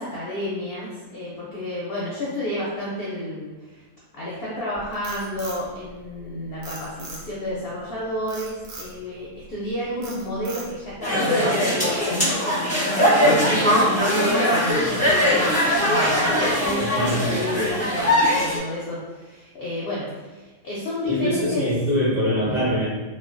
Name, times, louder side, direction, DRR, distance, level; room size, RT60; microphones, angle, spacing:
voice 1, 0.0-3.8 4.1-21.7, left 1 dB, 60° left, -6 dB, 0.6 m, -31 dB
Frog, 4.7-6.2 6.6-7.5 8.3-8.9 9.4-9.7 10.0-10.9, right 2 dB, 70° right, 1.0 m, -39 dB
sound 1, 11.0-18.6, equal, 10° left, 0.5 m, -21 dB
voice 2, 16.8-17.2 21.0-22.9, equal, 35° right, -10 dB, 1.1 m, -23 dB
3.0 x 2.1 x 2.5 m, 1.2 s
omnidirectional pair, 1.5 m